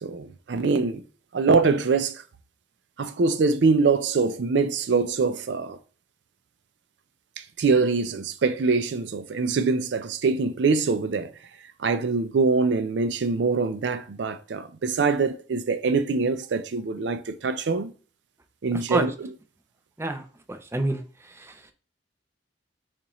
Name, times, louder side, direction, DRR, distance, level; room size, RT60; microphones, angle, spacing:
voice 1, 0.0-1.0 1.3-2.2 3.0-5.8 7.4-11.3 11.8-17.9 18.6-19.1, right 4 dB, 70° right, 0.4 m, -24 dB
voice 2, 20.0-21.6, right 2 dB, 15° right, 0.5 m, -29 dB
6.8 x 2.5 x 3.0 m
head